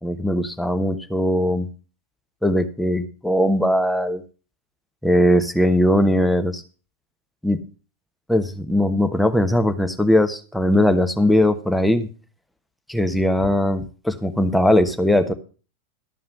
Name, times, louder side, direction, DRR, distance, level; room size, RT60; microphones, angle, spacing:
voice 1, 0.0-1.7 2.4-4.2 5.0-6.6 7.4-7.6 8.3-12.1 12.9-15.3, left 1 dB, 5° left, 8 dB, 1.1 m, -19 dB
13.0 x 5.6 x 6.7 m, 0.37 s
figure-of-eight pair, 90°, 0 cm